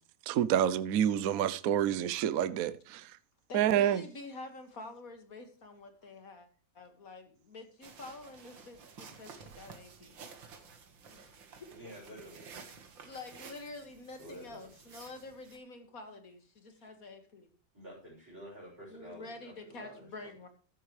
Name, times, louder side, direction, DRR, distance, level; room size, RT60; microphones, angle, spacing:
voice 1, 0.3-3.1 3.5-4.0, right 10 dB, 60° right, 1.0 m, -28 dB
voice 2, 3.5-6.5 6.7-10.1 11.0-11.7 13.0-17.5 18.9-20.5, left 3 dB, 50° left, 2.2 m, -48 dB
sound 1, 7.8-15.6, right 5 dB, 80° right, 2.4 m, -52 dB
voice 3, 11.7-12.5 14.2-14.7 16.8-16.9 17.7-20.3, equal, 10° right, 6.7 m, -50 dB
14.0 x 11.0 x 3.2 m
omnidirectional pair, 2.0 m